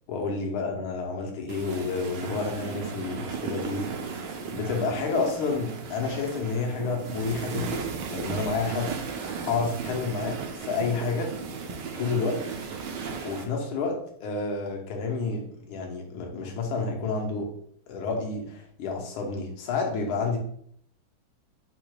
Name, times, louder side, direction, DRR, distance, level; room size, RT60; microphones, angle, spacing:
voice 1, 0.1-11.3 11.9-12.4 13.2-17.5 17.9-20.4, left 4 dB, 80° left, 1 dB, 1.7 m, -30 dB
sound 1, 1.5-13.4, right 5 dB, 70° right, 1.1 m, -35 dB
5.0 x 2.2 x 4.7 m, 0.65 s
omnidirectional pair, 2.3 m